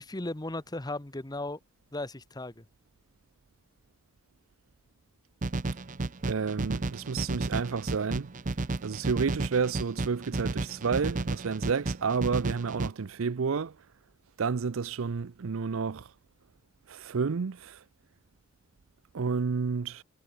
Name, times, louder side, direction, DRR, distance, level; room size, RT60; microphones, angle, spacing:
voice 1, 0.0-1.6 1.9-2.6, left 2 dB, 20° left, 1.1 m, -36 dB
sound 1, 5.4-12.9, right 2 dB, 35° right, 0.7 m, -33 dB
voice 2, 6.2-8.3 8.8-13.8 14.4-16.1 16.9-17.8 19.1-20.0, right 5 dB, 70° right, 0.5 m, -30 dB
head